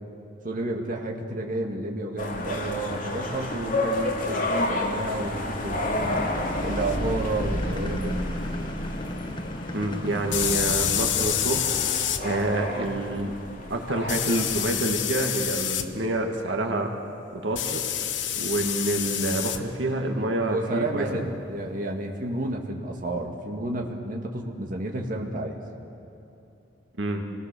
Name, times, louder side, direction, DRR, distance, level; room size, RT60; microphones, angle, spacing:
voice 1, 0.4-6.2 6.6-8.2 20.5-25.6, right 2 dB, 50° right, 1 dB, 1.9 m, -31 dB
sound 1, 2.2-14.6, left 1 dB, 50° left, 2.7 m, -31 dB
sound 2, 5.9-11.6, left 1 dB, 25° left, 0.9 m, -36 dB
sound 3, 6.9-7.0 10.3-12.2 14.1-15.9 17.6-19.6, left 10 dB, 85° left, 1.2 m, -27 dB
voice 2, 9.7-11.7 12.2-13.3 13.7-16.9 17.3-17.8 18.4-21.2 27.0-27.2, right 1 dB, 80° right, 3 dB, 2.0 m, -27 dB
27.0 x 19.0 x 6.9 m, 2.9 s
head